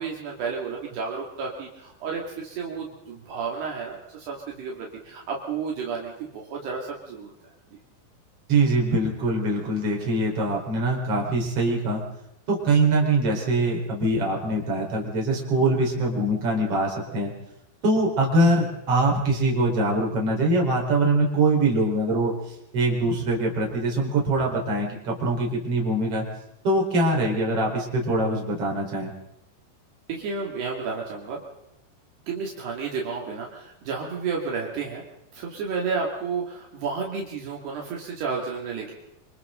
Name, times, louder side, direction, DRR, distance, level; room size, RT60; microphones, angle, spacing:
voice 1, 0.0-7.3 30.1-31.4 32.3-35.0 35.3-38.9, right 5 dB, 70° right, -2 dB, 4.5 m, -31 dB
voice 2, 8.5-12.0 12.5-17.3 17.8-22.3 22.7-26.3 26.6-29.1, right 2 dB, 35° right, -1 dB, 5.2 m, -23 dB
27.5 x 26.0 x 3.9 m, 0.86 s
omnidirectional pair, 5.1 m